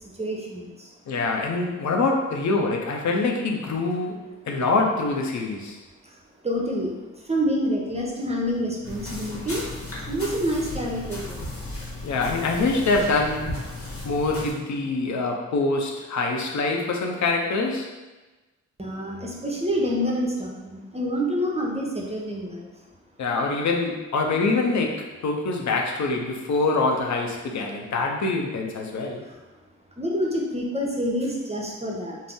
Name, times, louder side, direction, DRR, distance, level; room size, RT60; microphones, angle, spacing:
voice 1, 0.0-0.9 6.0-6.2 6.4-9.7 10.1-11.4 18.8-22.7 29.2-29.4 30.0-32.2, equal, 20° right, -2 dB, 0.7 m, -27 dB
voice 2, 1.1-5.8 12.0-13.6 14.0-17.9 23.2-29.2, left 3 dB, 65° left, 1 dB, 0.6 m, -25 dB
sound 1, 8.8-14.5, left 2 dB, 45° left, 1.0 m, -35 dB
2.6 x 2.0 x 3.5 m, 1.2 s
supercardioid pair, 45°, 31 cm